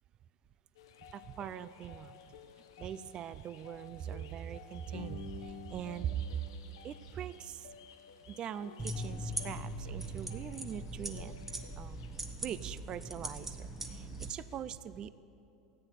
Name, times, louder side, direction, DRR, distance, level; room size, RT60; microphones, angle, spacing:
sound 1, 0.8-14.6, left 7 dB, 85° left, 1.0 m, -53 dB
voice 1, 1.1-2.2 2.8-6.4 6.8-7.7 8.3-11.4 11.8-12.1 12.4-15.1, right 9 dB, 40° right, 16 dB, 0.4 m, -42 dB
sound 2, 8.8-14.3, right 1 dB, 10° right, 1.2 m, -41 dB
14.5 x 9.1 x 8.2 m, 2.8 s
supercardioid pair, 110°, 2 cm